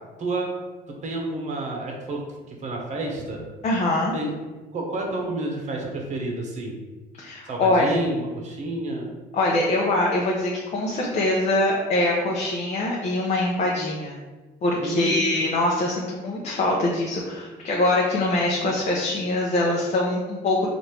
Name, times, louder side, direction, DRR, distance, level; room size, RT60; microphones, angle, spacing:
voice 1, 0.2-0.6 0.9-3.4 4.1-4.3 4.7-6.8 7.4-9.1 14.8-15.3, right 2 dB, 45° right, 0 dB, 1.0 m, -29 dB
voice 2, 3.6-4.1 7.2-7.9 9.3-14.2 14.6-20.7, left 2 dB, 40° left, -2 dB, 0.7 m, -23 dB
3.2 x 2.6 x 4.4 m, 1.2 s
cardioid pair, 110°, 17 cm